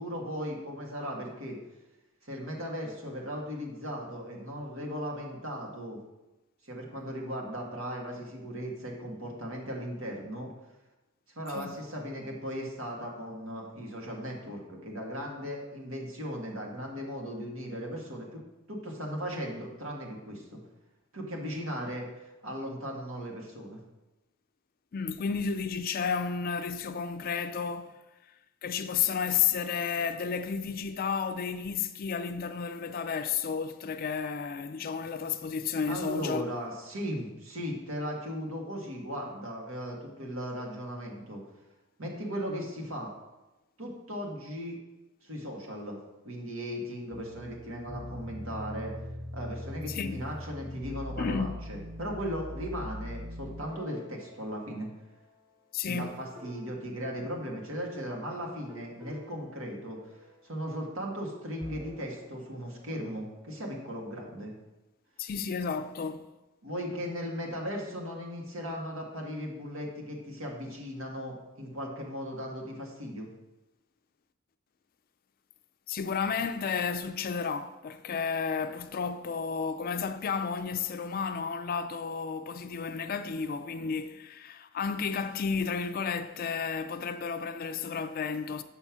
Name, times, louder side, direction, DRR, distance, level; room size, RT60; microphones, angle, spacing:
voice 1, 0.0-1.6 2.2-6.0 6.6-10.5 11.4-18.4 18.7-20.6 21.1-23.8 35.9-41.4 42.0-43.1 43.8-44.8 45.2-46.0 46.3-48.9 49.3-54.9 55.8-64.5 66.6-73.3, equal, 90° right, 1.9 m, -37 dB
voice 2, 24.9-28.0 28.6-36.5 49.9-50.2 51.2-51.6 55.7-56.2 65.2-66.3 75.9-88.6, left 6 dB, 45° left, 0.4 m, -32 dB
sound 1, 47.1-55.4 56.0-56.8 58.7-60.4 61.5-64.1, equal, 20° right, 1.7 m, -43 dB
6.8 x 5.5 x 5.9 m
head